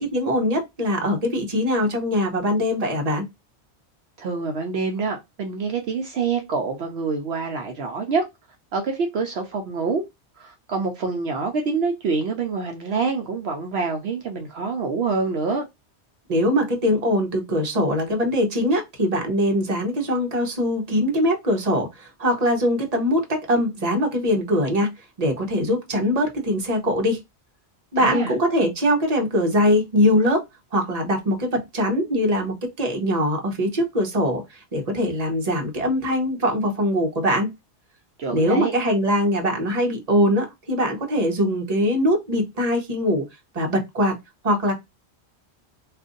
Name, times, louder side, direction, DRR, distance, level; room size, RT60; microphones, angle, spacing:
voice 1, 0.0-3.3 16.3-24.9 25.2-27.2 27.9-30.4 30.7-37.5 38.3-43.3 43.5-44.2 44.4-44.7, equal, 40° right, 1.0 m, -22 dB
voice 2, 4.2-8.3 8.7-10.0 10.4-15.7 28.0-28.3 38.2-38.7, right 4 dB, 70° right, 0.8 m, -26 dB
2.5 x 2.5 x 3.7 m
omnidirectional pair, 1.1 m